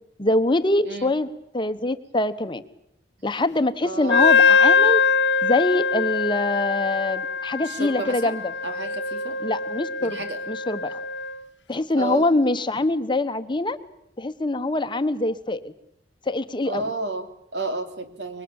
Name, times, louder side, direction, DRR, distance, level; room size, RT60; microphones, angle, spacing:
voice 1, 0.2-1.3 1.5-2.6 3.2-5.0 5.4-8.5 9.4-10.2 10.5-11.0 11.7-13.8 14.2-15.7 16.3-16.8, left 2 dB, 25° left, 10 dB, 1.1 m, -24 dB
voice 2, 3.8-4.4 7.6-8.4 8.6-9.4 10.0-10.4 11.9-12.3 16.6-18.4, right 2 dB, 70° right, 7 dB, 3.0 m, -32 dB
Wind instrument woodwind instrument, 4.1-11.4, left 5 dB, 75° left, 1.1 m, -22 dB
24.5 x 22.5 x 8.8 m, 0.73 s
head